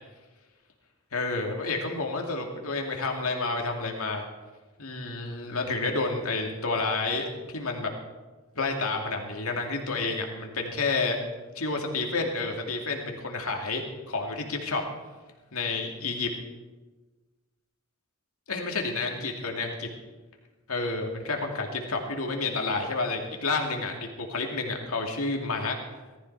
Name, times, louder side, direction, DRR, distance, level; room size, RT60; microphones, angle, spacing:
voice 1, 1.1-4.3 4.8-7.9 8.5-11.2 11.6-14.8 15.5-16.3 18.5-19.9 20.7-25.8, left 3 dB, 70° left, 2 dB, 2.5 m, -30 dB
18.5 x 13.5 x 4.8 m, 1.2 s
head